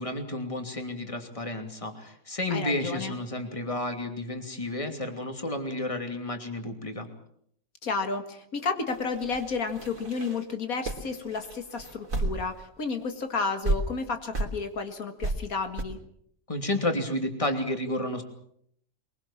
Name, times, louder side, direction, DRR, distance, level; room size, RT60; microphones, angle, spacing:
voice 1, 0.0-7.1 16.5-18.2, left 1 dB, 25° left, 5 dB, 3.0 m, -31 dB
voice 2, 2.5-3.1 7.8-16.0, left 4 dB, 85° left, 7 dB, 2.3 m, -32 dB
sound 1, 8.9-12.7 13.0-13.1 13.6-13.8 14.3-14.5 15.2-15.3 15.8-15.9, right 2 dB, 75° right, 3.6 m, -32 dB
23.0 x 22.5 x 7.3 m, 0.69 s
omnidirectional pair, 1.4 m